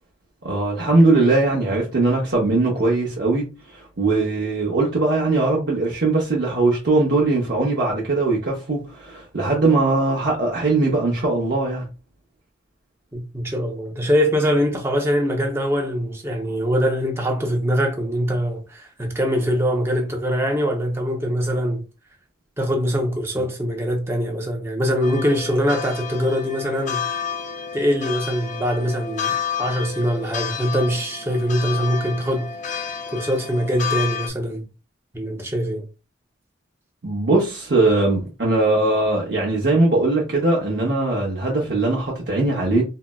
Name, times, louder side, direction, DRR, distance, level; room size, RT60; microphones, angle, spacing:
voice 1, 0.4-3.5 3.7-11.9 37.0-42.8, right 2 dB, 60° right, 0.7 m, -20 dB
voice 2, 13.1-21.8 22.6-27.0 27.7-32.5 33.1-34.6 35.1-35.8, equal, 15° right, 0.5 m, -23 dB
sound 1, 25.0-34.3, left 7 dB, 40° left, 0.3 m, -30 dB
3.8 x 2.0 x 2.2 m
head